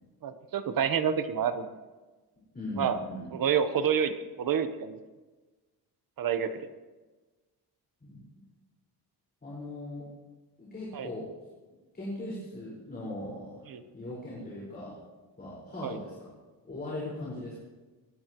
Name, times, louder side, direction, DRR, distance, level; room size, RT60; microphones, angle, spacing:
voice 1, 0.2-1.7 2.8-3.0 3.3-5.0 6.2-6.7 10.9-11.1 13.7-13.8 15.8-16.0, right 7 dB, 55° right, 10 dB, 1.1 m, -28 dB
voice 2, 2.5-3.3 8.0-8.2 9.4-10.1 10.6-11.3 11.9-13.6 13.9-15.0 15.4-16.3 16.6-17.6, left 1 dB, 25° left, -6 dB, 4.9 m, -39 dB
22.5 x 19.5 x 3.1 m, 1.3 s
wide cardioid pair, 175°, 40 cm